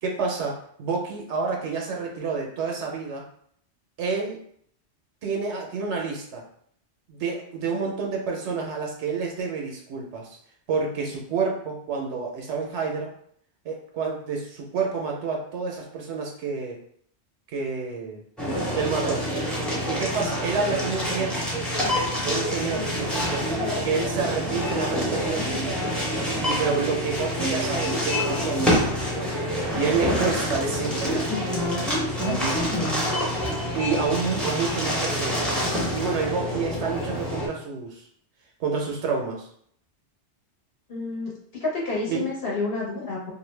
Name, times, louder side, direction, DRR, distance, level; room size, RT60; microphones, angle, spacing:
voice 1, 0.0-3.3 4.0-4.4 5.2-6.4 7.1-10.4 10.7-13.1 13.6-16.8 17.5-18.2 18.8-19.3 19.9-21.5 22.2-23.5 23.8-26.0 26.4-29.1 29.7-31.3 32.3-32.9 33.7-35.6 35.9-38.0 38.6-39.5 42.1-42.2, right 5 dB, 80° right, 0 dB, 0.9 m, -29 dB
sound 1, 18.4-37.5, equal, ahead, 0.5 m, -26 dB
voice 2, 40.9-41.3 41.6-43.3, left 3 dB, 55° left, -4 dB, 1.1 m, -29 dB
2.5 x 2.1 x 3.2 m, 0.64 s
omnidirectional pair, 1.2 m